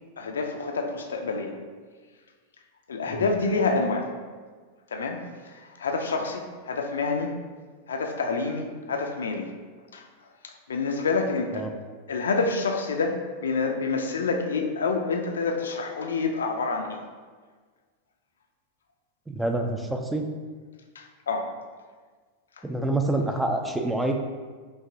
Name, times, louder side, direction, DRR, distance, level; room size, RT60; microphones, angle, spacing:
voice 1, 0.2-1.6 2.9-4.1 4.9-7.3 7.9-9.5 9.9-10.1 10.4-11.7 12.1-17.0 21.0-21.5 22.6-22.7, left 4 dB, 65° left, 4 dB, 0.4 m, -28 dB
voice 2, 19.3-20.2 22.6-24.1, right 2 dB, 5° right, 4 dB, 0.3 m, -27 dB
5.6 x 2.6 x 2.5 m, 1.5 s
figure-of-eight pair, 90°, 0 cm